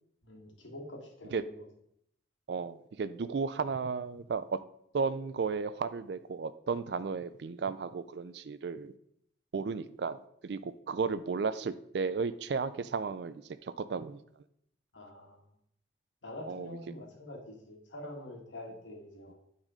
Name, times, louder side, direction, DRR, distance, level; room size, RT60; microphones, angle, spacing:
voice 1, 0.2-1.5 14.9-15.4 16.2-19.3, left 1 dB, 85° left, 1 dB, 1.8 m, -45 dB
voice 2, 2.5-4.6 4.9-8.9 9.5-14.2 16.5-16.7, right 5 dB, 65° right, 13 dB, 0.4 m, -34 dB
8.9 x 4.1 x 4.9 m, 0.72 s
head